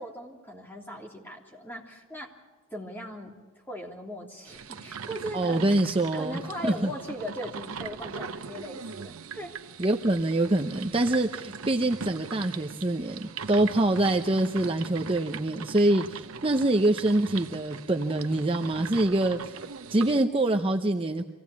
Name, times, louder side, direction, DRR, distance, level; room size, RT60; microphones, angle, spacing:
voice 1, 0.0-2.3 2.7-9.5, equal, 10° left, -1 dB, 3.2 m, -39 dB
sound 1, 4.5-20.3, right 6 dB, 85° right, 0.8 m, -40 dB
voice 2, 5.3-6.9 9.8-21.2, right 1 dB, 25° right, 4 dB, 0.7 m, -25 dB
24.5 x 17.0 x 8.4 m, 1.4 s
head